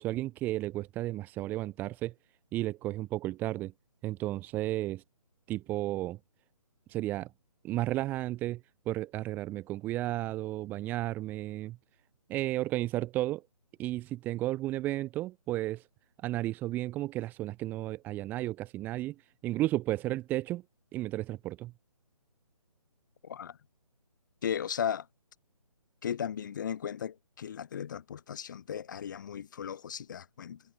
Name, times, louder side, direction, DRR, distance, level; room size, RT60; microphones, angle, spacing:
voice 1, 0.0-2.1 2.5-3.7 4.0-5.0 5.5-6.2 6.9-7.3 7.6-8.6 8.8-11.8 12.3-13.4 13.8-15.8 16.2-19.1 19.4-20.6 20.9-21.7, right 16 dB, 10° right, 3.4 m, -33 dB
voice 2, 23.2-23.6 24.4-25.1 26.0-30.6, left 8 dB, 30° left, 5.2 m, -36 dB
hypercardioid pair, 170°, 19 cm